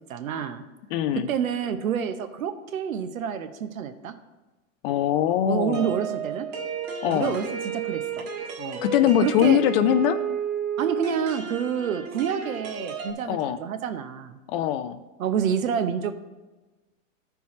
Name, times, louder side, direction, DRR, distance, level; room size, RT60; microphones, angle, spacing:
voice 1, 0.1-0.6 1.3-4.1 5.5-6.5 7.0-8.3 8.6-8.8 9.2-9.6 10.8-14.4 15.2-16.1, right 8 dB, 85° right, 10 dB, 0.9 m, -28 dB
voice 2, 0.9-1.3 4.8-5.9 7.0-7.4 8.8-10.2 13.3-13.6 14.5-15.0, left 11 dB, 45° left, 10 dB, 0.5 m, -22 dB
sound 1, 5.7-13.1, right 6 dB, 50° right, 1.6 m, -32 dB
13.0 x 4.6 x 4.2 m, 1.2 s
hypercardioid pair, 115°, 40 cm